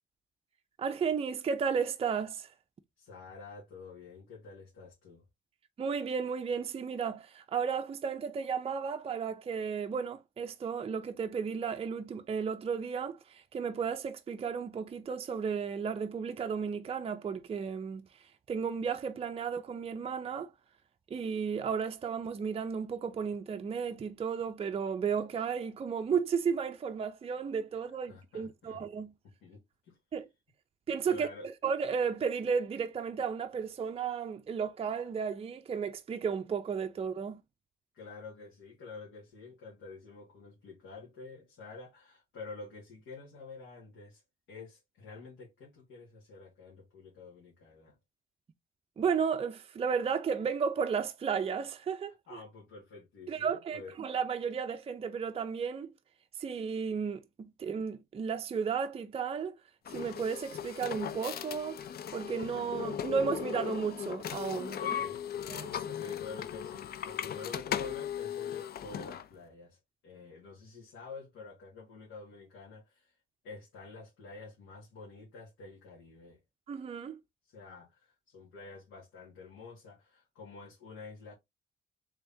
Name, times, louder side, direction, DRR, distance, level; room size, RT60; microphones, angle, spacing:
voice 1, 0.8-2.5 5.8-20.5 21.1-29.1 30.1-30.3 30.9-37.4 49.0-52.1 53.3-55.9 56.4-59.5 59.9-64.8 65.5-65.8 76.7-77.2, right 6 dB, 30° right, 0.5 m, -33 dB
voice 2, 3.0-5.2 28.1-28.8 29.4-30.0 31.1-31.5 37.9-44.2 44.5-48.0 52.3-53.9 64.8-65.2 65.6-73.2 73.4-76.4 77.4-81.3, left 4 dB, 80° left, 1.7 m, -49 dB
sound 1, 59.8-69.3, left 9 dB, 50° left, 0.4 m, -37 dB
3.4 x 3.4 x 2.7 m
cardioid pair, 90°, 20 cm